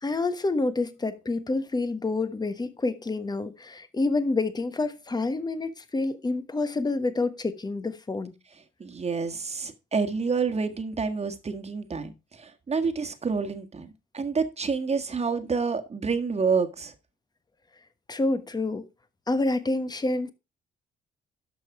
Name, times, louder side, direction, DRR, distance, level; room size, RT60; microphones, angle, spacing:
voice 1, 0.0-8.3 18.1-18.9 19.3-20.3, left 2 dB, 20° left, 1.3 m, -28 dB
voice 2, 8.8-16.9, right 5 dB, 30° right, 1.7 m, -28 dB
12.5 x 5.4 x 4.8 m
cardioid pair, 90°, 20 cm